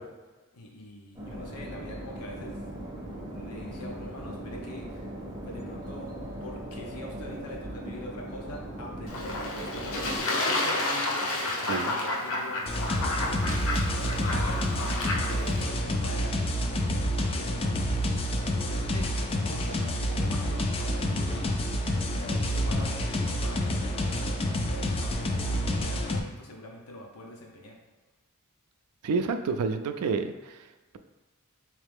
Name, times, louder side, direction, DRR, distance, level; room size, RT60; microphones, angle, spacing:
voice 1, 0.5-2.6 3.3-5.1 5.4-6.2 6.4-16.5 17.3-18.0 18.7-27.7, left 1 dB, 90° left, -1 dB, 0.9 m, -43 dB
whitenoise birds, 1.2-10.2, right 1 dB, 20° right, 0.6 m, -39 dB
Fowl / Bird / Water, 9.1-15.6, left 2 dB, 65° left, 0.7 m, -30 dB
sound 1, 12.7-26.2, equal, 25° left, 0.3 m, -28 dB
voice 2, 29.0-30.3, right 4 dB, 85° right, 8 dB, 0.4 m, -28 dB
3.6 x 3.2 x 3.5 m, 1.2 s
head